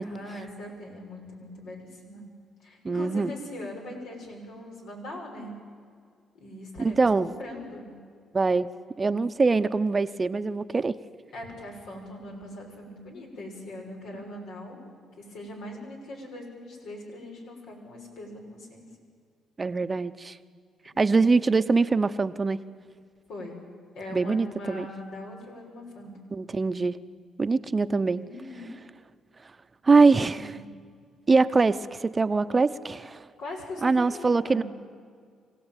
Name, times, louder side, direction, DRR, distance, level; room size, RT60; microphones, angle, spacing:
voice 1, 0.0-2.2 2.6-5.5 6.4-7.9 11.3-14.8 15.2-18.9 23.3-23.6 23.9-26.1 28.2-28.7 30.3-30.6 33.4-34.6, left 1 dB, 80° left, 0 dB, 6.2 m, -41 dB
voice 2, 2.8-3.3 6.8-7.3 8.3-8.7 9.0-10.9 19.6-20.4 21.0-22.6 24.1-24.9 26.3-27.0 27.4-28.2 29.8-30.5 31.3-33.2 33.8-34.6, right 4 dB, 30° right, 12 dB, 0.8 m, -23 dB
25.0 x 16.5 x 9.1 m, 2.1 s
cardioid pair, 90°, 0 cm